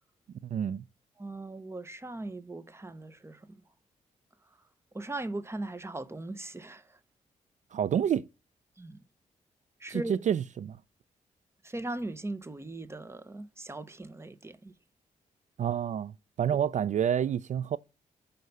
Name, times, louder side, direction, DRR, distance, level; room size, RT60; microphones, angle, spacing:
voice 1, 0.5-0.8 7.7-8.3 9.9-10.8 15.6-16.1 16.4-17.8, right 9 dB, 60° right, 0.4 m, -28 dB
voice 2, 1.2-3.6 4.9-7.0 8.8-9.0 9.8-10.1 11.6-14.7, right 2 dB, 20° right, 0.9 m, -39 dB
6.4 x 5.4 x 5.4 m
cardioid pair, 70°, 14 cm